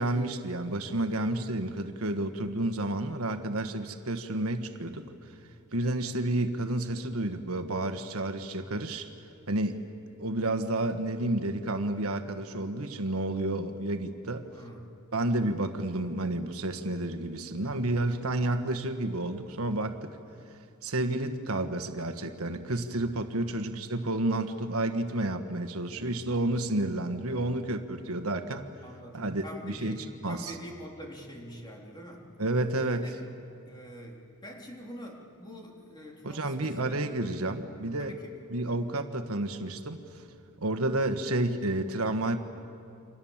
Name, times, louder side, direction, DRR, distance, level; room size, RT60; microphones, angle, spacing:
voice 1, 0.0-5.1 5.7-9.1 9.5-9.9 10.2-14.4 15.1-20.2 20.8-28.7 29.1-30.5 32.4-33.1 36.2-38.2 38.5-40.2 40.6-42.4, right 2 dB, 70° right, 7 dB, 1.5 m, -30 dB
voice 2, 14.5-14.9 23.3-23.7 27.3-27.4 28.8-32.2 32.9-33.1 33.6-37.0 38.0-38.4, equal, 20° left, -1 dB, 3.7 m, -45 dB
29.5 x 25.5 x 7.4 m, 2.5 s
head